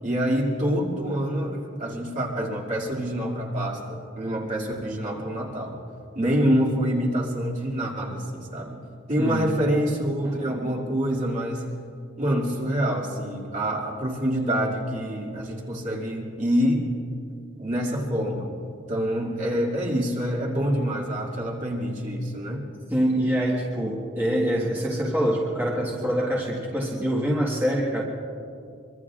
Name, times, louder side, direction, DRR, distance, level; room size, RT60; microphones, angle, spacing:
voice 1, 0.0-5.8 6.1-8.8 9.1-11.6 12.2-16.9 17.6-18.5 18.9-22.7, equal, 40° right, -3 dB, 2.4 m, -26 dB
voice 2, 9.2-9.5 22.9-28.0, equal, 10° right, -5 dB, 1.6 m, -25 dB
24.0 x 23.5 x 2.5 m, 2.5 s
head